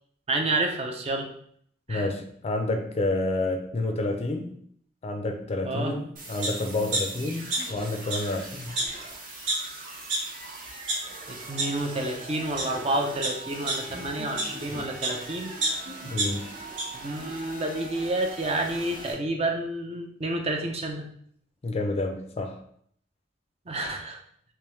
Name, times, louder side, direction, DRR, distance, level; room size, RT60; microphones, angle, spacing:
voice 1, 0.3-1.3 1.9-2.1 5.6-5.9 11.3-15.5 16.9-21.0 23.7-24.2, right 2 dB, 35° right, 0.5 m, -29 dB
voice 2, 1.9-4.6 5.0-8.8 16.1-16.5 21.6-22.6, left 2 dB, 35° left, 0.4 m, -29 dB
sound 1, 6.2-19.1, right 2 dB, 50° right, 0.9 m, -42 dB
sound 2, 6.4-6.5 6.9-7.8 8.1-8.2 8.8-8.9 9.5-9.6 10.1-10.2 10.7-11.0 11.6-11.7 12.3-12.6 13.2-15.2 15.6-16.8 17.2-17.3, right 2 dB, 75° right, 1.0 m, -29 dB
3.4 x 3.0 x 3.1 m
head